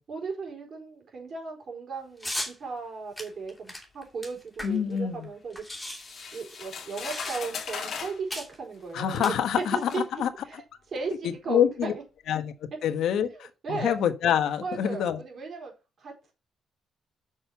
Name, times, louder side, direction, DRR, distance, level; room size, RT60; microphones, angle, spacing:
voice 1, 0.1-5.6 6.3-9.3 9.7-10.0 10.4-10.6 10.9-11.9 13.3-14.0 14.6-15.7 16.0-16.3, right 4 dB, 50° right, 4.4 m, -36 dB
sound 1, 2.2-2.6 3.2-5.0 5.2-5.3 5.5-7.7 8.3-8.6 9.1-9.9, left 1 dB, 5° left, 2.8 m, -38 dB
voice 2, 4.6-5.3 8.9-10.3 11.2-11.9 12.3-12.5 12.8-15.2, left 9 dB, 75° left, 1.2 m, -26 dB
sound 2, 6.0-8.2 9.2-9.3 9.9-10.1, left 6 dB, 60° left, 1.9 m, -37 dB
6.4 x 6.2 x 5.6 m
cardioid pair, 90°, 0 cm